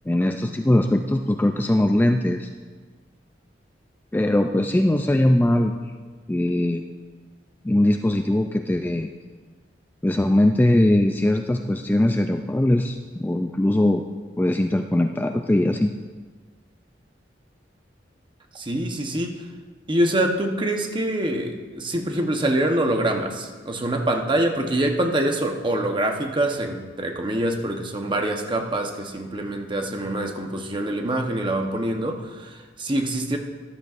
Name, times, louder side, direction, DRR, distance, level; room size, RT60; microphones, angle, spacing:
voice 1, 0.1-2.5 4.1-5.7 6.3-6.8 7.6-9.1 10.0-14.0 14.4-15.9, left 1 dB, 10° left, 5 dB, 0.3 m, -20 dB
voice 2, 18.5-19.4 19.9-33.4, right 1 dB, 25° right, 3 dB, 0.9 m, -25 dB
13.5 x 12.0 x 2.5 m, 1.4 s
head